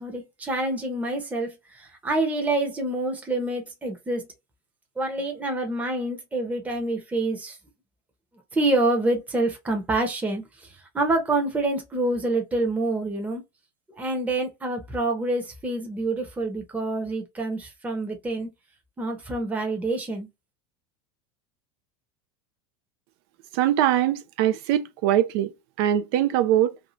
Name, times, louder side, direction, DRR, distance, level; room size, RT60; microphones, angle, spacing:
voice 1, 0.0-4.3 5.0-7.6 8.5-13.4 14.0-18.5 19.0-20.3, right 2 dB, 10° right, 0.8 m, -27 dB
voice 2, 23.6-25.5 25.8-26.7, right 11 dB, 65° right, 0.5 m, -22 dB
2.7 x 2.4 x 3.0 m
supercardioid pair, 115°, 14 cm